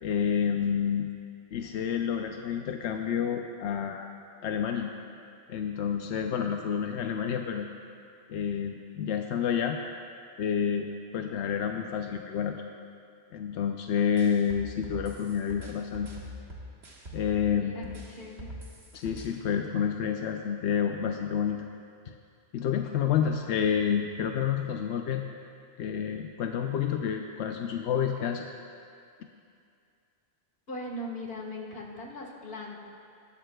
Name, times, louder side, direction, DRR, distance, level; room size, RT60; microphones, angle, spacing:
voice 1, 0.0-1.1 1.5-4.1 4.4-4.9 5.5-7.7 8.3-9.8 10.4-12.6 13.3-16.1 17.1-18.0 18.9-21.7 22.5-25.2 25.8-28.5, left 8 dB, 90° left, 4 dB, 0.9 m, -29 dB
sound 1, 14.2-17.5 17.8-19.3, equal, 75° right, 1.9 m, -43 dB
voice 2, 17.5-18.5 30.7-32.9, left 1 dB, 60° left, -1 dB, 1.7 m, -40 dB
19.0 x 12.5 x 2.3 m, 2.4 s
omnidirectional pair, 1.1 m